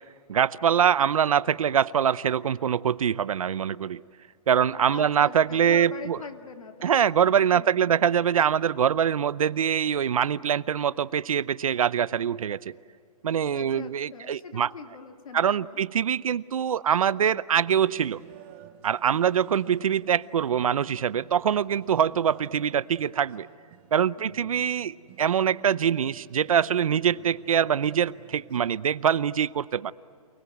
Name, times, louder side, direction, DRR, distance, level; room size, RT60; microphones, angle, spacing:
voice 1, 0.3-4.0 4.5-6.2 6.8-12.7 13.2-14.7 15.3-18.2 18.8-23.5 23.9-29.9, right 8 dB, 65° right, 18 dB, 0.7 m, -24 dB
voice 2, 4.9-7.2 7.5-8.1 13.5-15.8 19.1-19.6 24.2-24.8, left 5 dB, 65° left, 6 dB, 2.4 m, -43 dB
sound 1, 17.6-28.7, right 11 dB, 20° right, 0.9 m, -51 dB
29.0 x 20.0 x 9.3 m, 2.3 s
hypercardioid pair, 175°, 19 cm